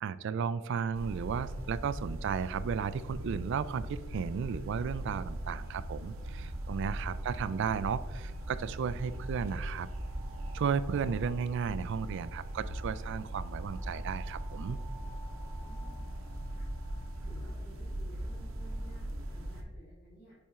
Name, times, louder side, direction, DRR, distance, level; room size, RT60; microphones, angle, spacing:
voice 1, 0.0-9.9 10.5-14.8, right 6 dB, 60° right, 16 dB, 0.3 m, -34 dB
sound 1, 0.9-19.6, right 1 dB, 80° right, 0.8 m, -39 dB
voice 2, 15.6-16.2 16.5-16.6 17.2-20.3, right 1 dB, 45° left, -9 dB, 1.7 m, -56 dB
7.4 x 4.3 x 3.5 m, 1.2 s
head